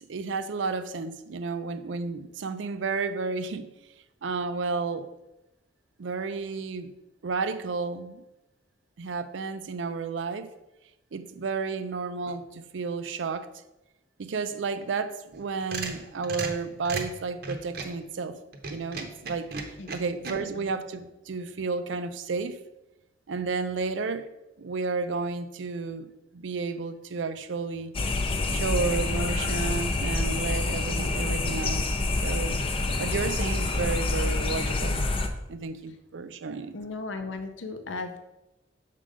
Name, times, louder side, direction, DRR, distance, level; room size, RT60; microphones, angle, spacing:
voice 1, 0.0-3.7 4.2-5.1 6.0-6.9 7.2-8.2 9.0-10.5 11.1-13.5 14.2-18.4 18.7-19.5 19.9-22.6 23.3-24.3 24.6-27.9 28.5-31.8 32.2-32.6 33.0-35.1 35.5-36.7, right 4 dB, 80° right, 0.5 m, -32 dB
sound 1, 15.3-18.0 18.5-20.3, right 4 dB, 55° right, 0.8 m, -35 dB
sound 2, 27.9-35.3, left 2 dB, 30° left, 0.5 m, -27 dB
voice 2, 36.7-38.2, left 3 dB, 85° left, 0.6 m, -35 dB
6.6 x 3.7 x 5.0 m
head